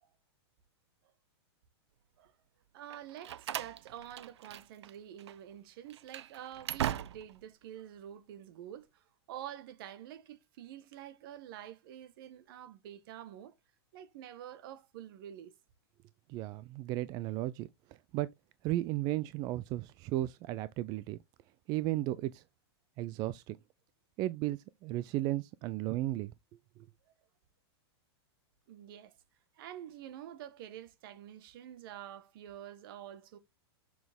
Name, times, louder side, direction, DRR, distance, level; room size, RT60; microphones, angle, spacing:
voice 1, 2.7-13.5 13.9-15.5 28.7-29.1 29.6-33.4, right 11 dB, 55° right, 1.4 m, -48 dB
Slam, 2.9-4.9 5.2-5.4 5.9-7.5, right 11 dB, 85° right, 0.6 m, -39 dB
voice 2, 16.3-17.7 18.1-18.3 18.6-21.2 21.7-22.4 23.0-23.6 24.2-26.3 26.8-26.9, right 15 dB, 30° right, 0.4 m, -34 dB
7.0 x 6.1 x 3.6 m
supercardioid pair, 150°, 14 cm